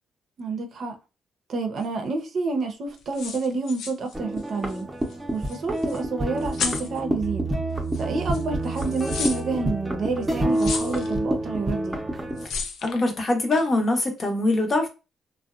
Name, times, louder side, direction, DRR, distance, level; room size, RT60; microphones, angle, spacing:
voice 1, 0.4-1.0 1.5-4.9 5.3-7.5 8.0-12.0, right 3 dB, 60° right, 0.6 m, -29 dB
sound 1, 1.8-1.9 3.0-4.8 5.1-5.2 5.4-6.0 6.4-7.0 7.9-8.0 8.3-9.4 10.5-11.2 12.4-13.1 13.5-13.7, left 5 dB, 70° left, 0.4 m, -33 dB
sound 2, 4.1-12.5, right 1 dB, 15° right, 0.6 m, -28 dB
voice 2, 12.8-14.9, left 2 dB, 35° left, 0.7 m, -23 dB
2.6 x 2.1 x 2.3 m
cardioid pair, 90°, 0 cm